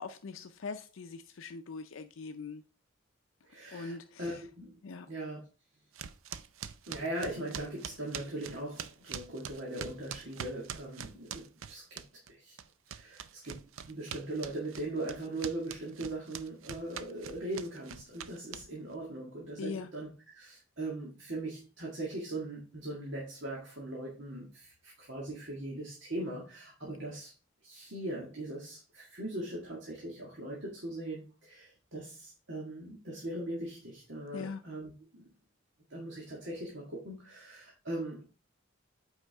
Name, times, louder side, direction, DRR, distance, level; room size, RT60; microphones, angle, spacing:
voice 1, 0.0-2.6 3.7-4.4 4.8-5.1 19.6-19.9 34.3-34.7, left 4 dB, 80° left, 0.5 m, -42 dB
voice 2, 3.5-4.8 5.1-5.4 6.9-12.0 12.3-12.6 12.9-27.3 27.6-35.3 35.9-38.2, right 1 dB, 65° right, 1.9 m, -40 dB
sound 1, 6.0-12.3 12.6-18.9, right 8 dB, 85° right, 0.5 m, -43 dB
8.2 x 4.9 x 3.4 m
head